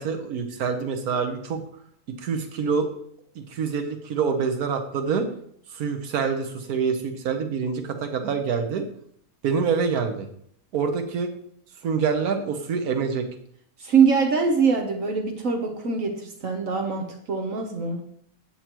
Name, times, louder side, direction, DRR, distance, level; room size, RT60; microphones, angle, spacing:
voice 1, 0.0-1.6 2.1-2.9 3.3-5.3 5.7-8.8 9.4-10.3 10.7-11.3 11.8-13.3, right 5 dB, 85° right, 5 dB, 1.4 m, -26 dB
voice 2, 13.8-18.0, right 5 dB, 65° right, 4 dB, 1.4 m, -23 dB
8.8 x 8.4 x 3.0 m, 0.65 s
omnidirectional pair, 1.5 m